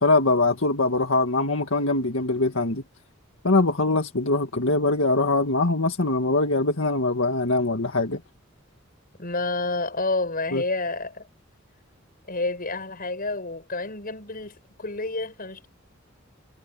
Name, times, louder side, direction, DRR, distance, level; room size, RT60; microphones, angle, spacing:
voice 1, 0.0-2.8 3.4-8.2 10.5-10.6, left 2 dB, 75° left, 1.9 m, -22 dB
voice 2, 9.2-11.3 12.3-15.7, left 3 dB, 45° left, 6.8 m, -29 dB
head